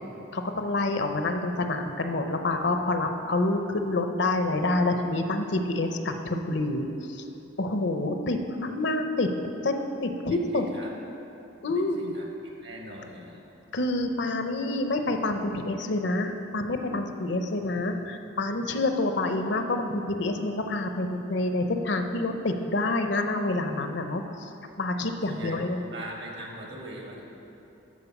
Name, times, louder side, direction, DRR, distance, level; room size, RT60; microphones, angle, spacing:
voice 1, 0.3-7.2 7.6-10.7 11.6-12.1 13.7-24.5 24.8-25.8, left 2 dB, 60° left, 6 dB, 0.7 m, -27 dB
voice 2, 10.3-10.9 11.7-12.3 12.6-13.4 17.6-17.9 25.3-25.6 25.9-27.2, right 1 dB, 55° right, -1 dB, 1.5 m, -41 dB
12.5 x 4.4 x 7.1 m, 2.9 s
head